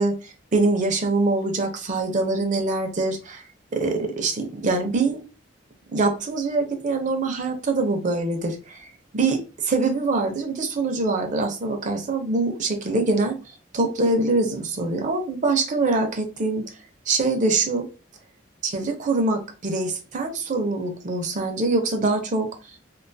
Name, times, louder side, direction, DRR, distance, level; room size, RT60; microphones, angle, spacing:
voice 1, 0.0-3.4 3.7-5.2 5.9-13.4 13.7-16.7 17.1-17.9 18.6-22.5, right 3 dB, 45° right, 4 dB, 0.5 m, -24 dB
2.4 x 2.2 x 2.6 m, 0.33 s
head